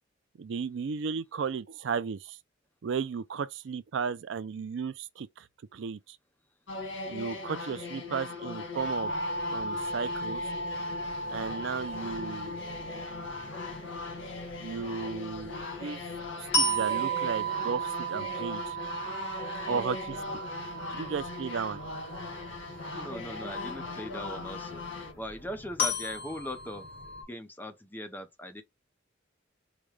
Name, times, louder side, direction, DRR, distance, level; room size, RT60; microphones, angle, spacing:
voice 1, 0.4-2.4 2.8-5.5 5.7-6.2 7.1-9.1 9.5-10.4 11.3-12.6 14.6-16.0 16.4-18.8 19.7-20.2 20.9-21.8, right 5 dB, 70° right, 0.4 m, -34 dB
sound 1, 6.7-25.1, left 3 dB, 85° left, 1.6 m, -39 dB
sound 2, 8.8-27.2, right 2 dB, 55° left, 2.1 m, -36 dB
voice 2, 22.9-24.8 25.2-26.9 27.3-28.6, equal, 10° left, 0.6 m, -40 dB
5.0 x 2.2 x 3.1 m
head